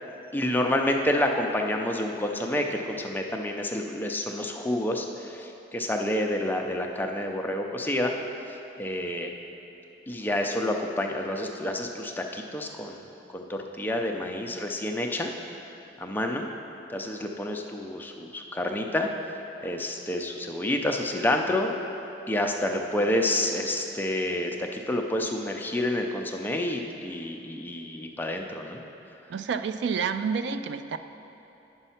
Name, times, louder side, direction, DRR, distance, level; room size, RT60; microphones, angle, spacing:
voice 1, 0.3-8.1 8.8-9.3 10.1-13.0 13.3-15.3 16.0-16.5 16.9-19.1 19.6-21.7 22.3-28.8, left 1 dB, 10° left, 2 dB, 0.5 m, -28 dB
voice 2, 29.3-31.0, right 6 dB, 70° right, 10 dB, 0.3 m, -29 dB
9.1 x 5.4 x 5.7 m, 2.9 s
head